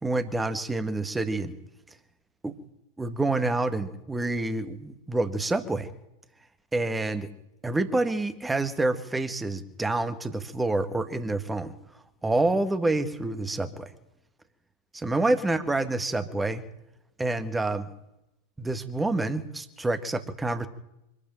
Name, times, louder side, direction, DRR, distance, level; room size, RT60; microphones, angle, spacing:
voice 1, 0.0-1.5 2.4-2.5 3.0-5.9 6.7-7.3 7.6-11.7 12.2-13.9 14.9-16.6 17.2-17.9 18.6-20.7, right 2 dB, 10° right, 11 dB, 1.8 m, -27 dB
25.0 x 12.0 x 9.1 m, 0.89 s
figure-of-eight pair, 90°, 0 cm